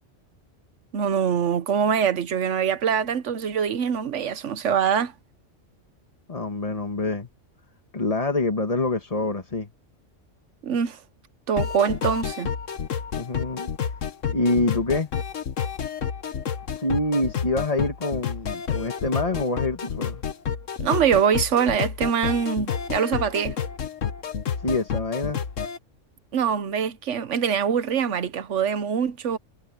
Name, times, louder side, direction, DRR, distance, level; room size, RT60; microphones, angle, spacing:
voice 1, 0.9-5.1 10.6-11.0 11.5-12.5 20.8-23.6 26.3-29.4, right 7 dB, 75° right, 1.3 m, -24 dB
voice 2, 6.3-7.3 7.9-9.7 13.2-13.7 14.3-15.1 16.7-20.2 24.6-25.4, left 2 dB, 30° left, 1.6 m, -26 dB
sound 1, 11.6-25.8, left 7 dB, 85° left, 1.5 m, -30 dB
omnidirectional pair, 1.3 m